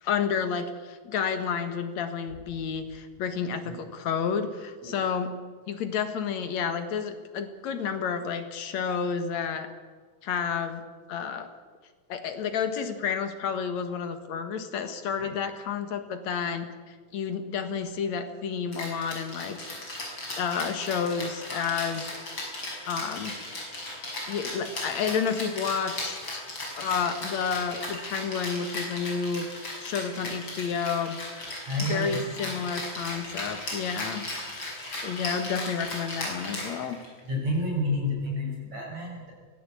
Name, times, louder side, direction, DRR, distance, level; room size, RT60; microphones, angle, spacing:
voice 1, 0.0-5.3 5.7-9.7 10.2-10.8 11.1-11.5 12.1-19.8 20.4-22.1 22.9-23.3 24.3-26.4 26.8-29.5 29.8-31.2 31.8-34.3 35.0-37.0, left 6 dB, 70° left, 9 dB, 2.9 m, -30 dB
Rattle (instrument), 18.7-37.2, left 1 dB, 40° left, 7.1 m, -36 dB
voice 2, 31.6-32.6 37.2-39.3, left 1 dB, 65° right, -1 dB, 7.9 m, -30 dB
23.0 x 17.0 x 8.5 m, 1.5 s
omnidirectional pair, 3.3 m